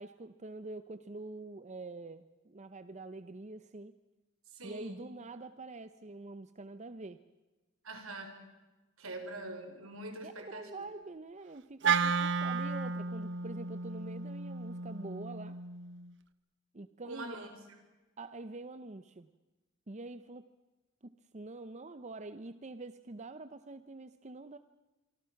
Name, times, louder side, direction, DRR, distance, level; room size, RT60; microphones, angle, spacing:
voice 1, 0.0-4.0 4.6-7.2 10.2-15.6 16.7-17.4 18.2-19.3 19.9-20.5 21.0-24.6, right 2 dB, 35° right, 12 dB, 0.7 m, -46 dB
voice 2, 4.5-5.1 7.8-8.3 9.0-10.7 17.0-17.6, right 2 dB, 75° right, 6 dB, 4.7 m, -44 dB
Wind instrument woodwind instrument, 11.8-16.1, right 5 dB, 60° right, 1.1 m, -33 dB
26.5 x 25.0 x 5.9 m, 1.2 s
head